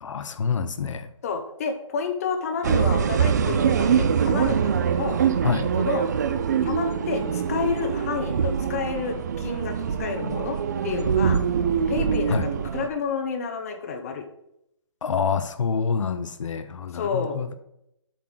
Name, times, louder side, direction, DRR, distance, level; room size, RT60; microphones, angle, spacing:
voice 1, 0.0-1.1 5.4-5.7 12.3-12.5 15.0-17.5, left 6 dB, 75° left, 0.7 m, -27 dB
voice 2, 1.2-5.2 5.8-6.1 6.6-10.6 10.8-11.4 11.9-14.3 16.9-17.4, left 5 dB, 30° left, 0.7 m, -30 dB
sound 1, 2.6-12.9, right 7 dB, 35° right, 0.4 m, -24 dB
8.1 x 3.7 x 6.0 m
hypercardioid pair, 165°, 16 cm